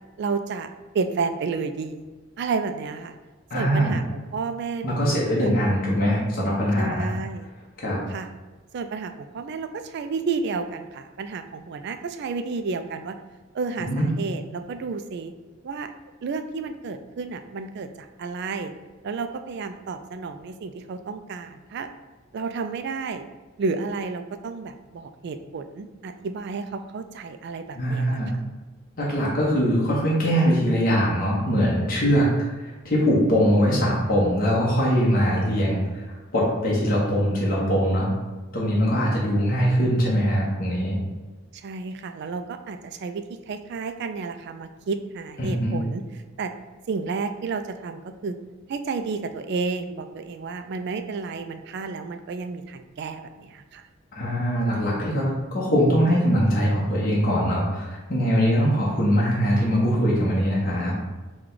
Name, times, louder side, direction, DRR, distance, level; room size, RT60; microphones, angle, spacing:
voice 1, 0.2-0.7 0.9-2.0 2.4-3.1 3.5-4.0 4.3-5.5 6.8-7.5 8.1-8.3 8.7-13.2 13.5-15.3 15.6-15.9 16.2-18.7 19.0-21.9 22.3-23.3 23.6-28.2 41.5-46.0 46.4-46.5 46.9-48.4 48.7-53.8, right 4 dB, 55° right, 8 dB, 0.3 m, -31 dB
voice 2, 3.5-4.0 4.8-7.1 7.8-8.0 13.8-14.1 27.7-28.3 29.0-32.3 32.6-38.1 38.5-41.0 45.4-45.7 54.1-55.3 55.5-60.9, equal, 45° left, -5 dB, 1.0 m, -22 dB
4.7 x 2.3 x 3.8 m, 1.3 s
head